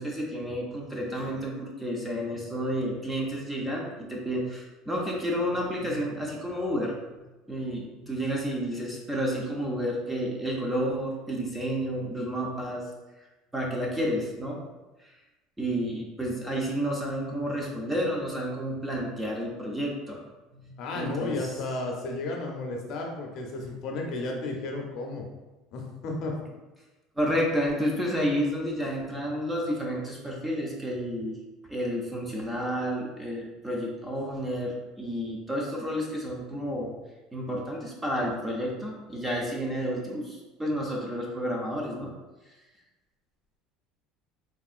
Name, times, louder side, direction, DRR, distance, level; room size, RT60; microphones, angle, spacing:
voice 1, 0.0-6.9 7.5-12.9 13.5-14.6 15.6-20.2 20.5-21.5 27.2-31.4 31.7-36.9 37.3-42.1, equal, 5° right, -2 dB, 0.4 m, -30 dB
voice 2, 20.8-25.2 25.7-26.3, left 2 dB, 45° left, 1 dB, 0.5 m, -33 dB
3.5 x 2.4 x 2.4 m, 1.1 s
cardioid pair, 175°, 0 cm